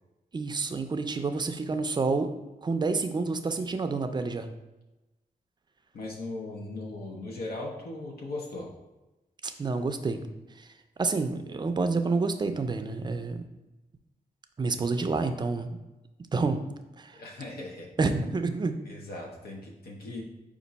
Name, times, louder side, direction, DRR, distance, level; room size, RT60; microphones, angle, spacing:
voice 1, 0.3-2.3 2.6-4.5 9.4-10.2 10.6-10.7 11.0-13.4 14.6-15.7 16.3-16.6 17.0-17.2 18.0-18.8, right 4 dB, 30° right, 8 dB, 0.4 m, -28 dB
voice 2, 5.9-8.7 17.1-17.9 18.8-20.2, left 2 dB, 85° left, -1 dB, 0.8 m, -38 dB
5.2 x 2.5 x 4.0 m, 1.0 s
wide cardioid pair, 125°, 15 cm